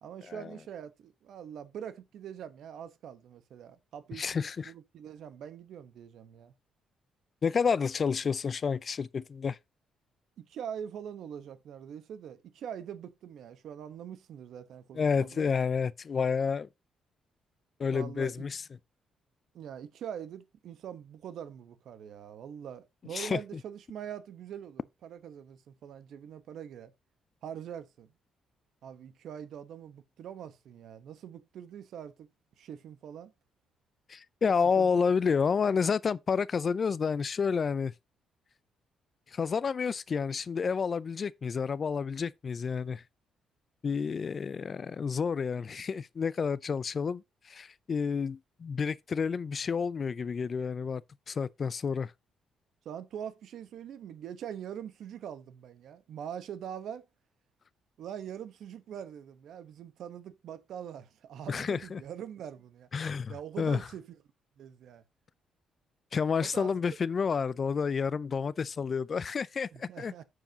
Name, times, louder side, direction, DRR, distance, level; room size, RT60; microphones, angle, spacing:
voice 1, 0.0-4.3 4.6-6.5 10.4-15.5 17.9-18.4 19.5-26.9 27.4-28.1 28.8-32.3 32.6-33.3 34.8-34.9 52.8-57.1 58.0-62.9 63.3-64.2 64.6-65.0 66.4-66.7 69.7-70.2, right 9 dB, 70° right, 1.0 m, -43 dB
voice 2, 4.1-4.7 7.4-9.6 15.0-16.7 17.8-18.6 23.1-23.4 34.1-37.9 39.3-43.0 43.8-51.0 51.3-52.1 61.5-62.0 62.9-63.8 66.1-70.1, left 6 dB, 45° left, 0.4 m, -30 dB
14.5 x 4.8 x 2.8 m
cardioid pair, 90°, 0 cm